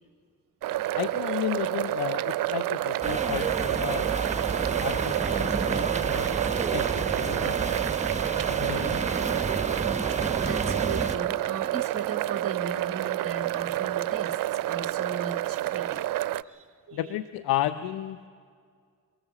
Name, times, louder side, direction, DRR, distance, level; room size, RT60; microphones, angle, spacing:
sound 1, 0.6-16.4, right 15 dB, 70° right, 0.5 m, -29 dB
voice 1, 0.9-4.5 4.8-6.3 6.7-7.8 8.5-9.1 16.9-18.3, left 13 dB, 90° left, 12 dB, 0.6 m, -33 dB
sound 2, 3.0-11.2, right 3 dB, 20° right, 1.2 m, -30 dB
voice 2, 10.1-16.0 16.4-17.3, right 5 dB, 40° right, 6 dB, 1.2 m, -37 dB
23.0 x 18.0 x 7.4 m, 2.1 s
supercardioid pair, 60°, 35 cm